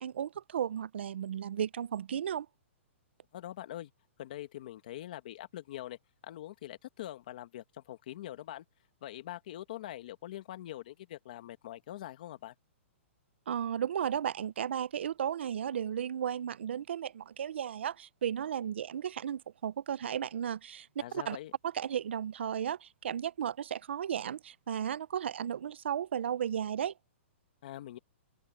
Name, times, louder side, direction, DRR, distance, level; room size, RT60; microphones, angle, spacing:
voice 1, 0.0-2.5 13.5-20.9 21.1-21.4 21.6-26.9, right 9 dB, 60° right, 0.5 m, -34 dB
voice 2, 3.3-3.9 4.2-6.0 6.2-8.7 9.0-12.5 21.0-21.5 27.6-28.0, left 13 dB, 40° left, 1.7 m, -43 dB
open air
hypercardioid pair, 180°, 7 cm